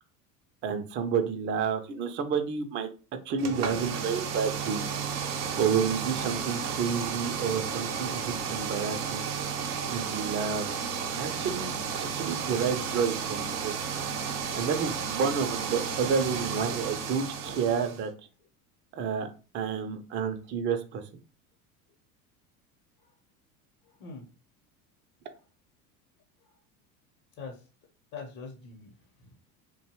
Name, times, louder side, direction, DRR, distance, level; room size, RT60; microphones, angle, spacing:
voice 1, 0.6-2.9 3.3-4.8 5.6-9.3 9.9-10.7 11.2-13.7 14.5-18.1 18.9-19.3 19.5-21.0, right 6 dB, 25° right, 7 dB, 0.4 m, -30 dB
sound 1, 3.4-18.0, right 6 dB, 80° right, 0.7 m, -33 dB
voice 2, 23.8-24.3 27.4-27.7 28.1-28.9 29.2-29.4, left 4 dB, 50° left, 0 dB, 0.9 m, -43 dB
2.6 x 2.2 x 2.9 m, 0.34 s
hypercardioid pair, 85°, 45 cm